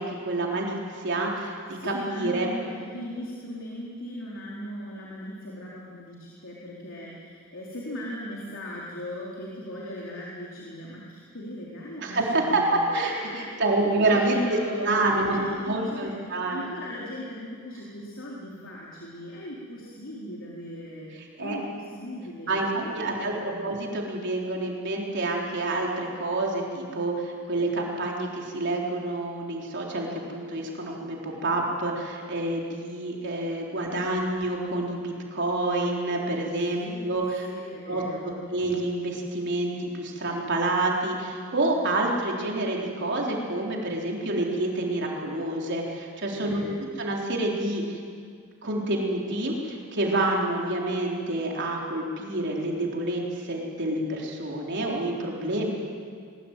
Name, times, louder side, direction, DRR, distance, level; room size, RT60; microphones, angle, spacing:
voice 1, 0.0-2.5 12.0-12.6 12.9-13.1 13.6-16.7 21.4-21.6 22.5-23.3 23.6-37.5 37.9-46.6 47.0-48.0 48.6-53.2 53.5-55.7, right 2 dB, 55° right, -1 dB, 4.0 m, -28 dB
voice 2, 1.7-23.7 36.8-37.0 37.4-38.5 46.3-46.9, left 1 dB, 65° left, -4 dB, 4.0 m, -39 dB
22.5 x 21.0 x 9.1 m, 2.1 s
head